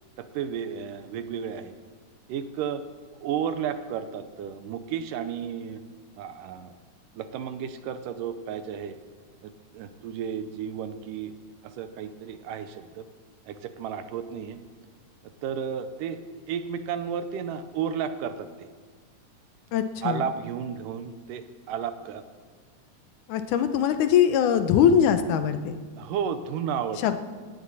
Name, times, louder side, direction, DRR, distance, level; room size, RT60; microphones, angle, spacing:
voice 1, 0.2-1.7 2.3-2.8 3.2-5.8 6.2-6.7 7.2-9.0 9.4-11.3 11.6-13.0 13.5-14.6 15.2-16.2 16.5-18.7 20.0-22.2 26.0-27.0, right 8 dB, 80° right, 10 dB, 2.4 m, -33 dB
voice 2, 19.7-20.3 23.3-25.8 27.0-27.2, left 8 dB, 75° left, 9 dB, 2.2 m, -22 dB
17.5 x 17.0 x 4.2 m, 1.5 s
omnidirectional pair, 3.8 m